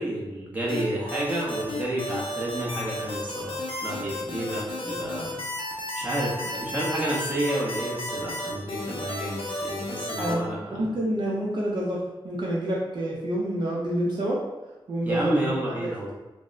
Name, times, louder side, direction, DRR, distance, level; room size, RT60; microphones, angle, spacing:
voice 1, 0.0-5.3 5.9-10.9 15.0-16.1, right 1 dB, 20° right, -5 dB, 0.8 m, -30 dB
sound 1, 0.7-10.3, left 1 dB, 75° left, 0.6 m, -33 dB
voice 2, 10.7-14.4 14.9-15.7, right 1 dB, 55° right, -4 dB, 0.5 m, -28 dB
3.4 x 2.0 x 2.5 m, 1.1 s
wide cardioid pair, 140°, 9 cm